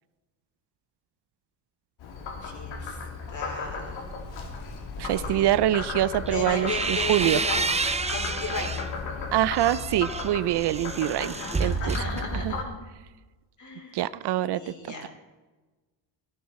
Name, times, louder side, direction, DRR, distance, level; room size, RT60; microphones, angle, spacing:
Frog, 2.0-12.6, left 4 dB, 80° left, 3.0 m, -36 dB
voice 1, 2.4-3.0 3.3-4.1 5.0-8.9 11.1-12.7 13.6-14.0 14.5-15.1, left 3 dB, 40° left, 1 dB, 4.4 m, -36 dB
voice 2, 5.0-7.4 9.3-11.3 11.6-12.0 12.4-12.6 13.9-14.6, right 13 dB, 65° right, 17 dB, 0.6 m, -25 dB
sound 1, 6.3-8.9 9.4-12.7, right 4 dB, 15° right, 0.6 m, -30 dB
16.5 x 14.0 x 4.2 m, 1.2 s
cardioid pair, 130°, 44 cm